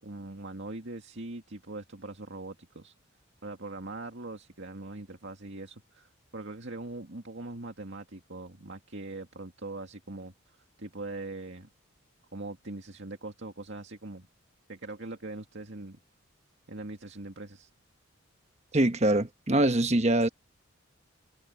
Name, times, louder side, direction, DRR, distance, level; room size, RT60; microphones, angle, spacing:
voice 1, 0.0-2.9 3.4-10.3 10.8-11.7 12.3-14.3 14.7-16.0 16.7-17.7, right 2 dB, 60° right, 2.2 m, -41 dB
voice 2, 18.7-20.3, right 1 dB, 30° right, 1.2 m, -24 dB
head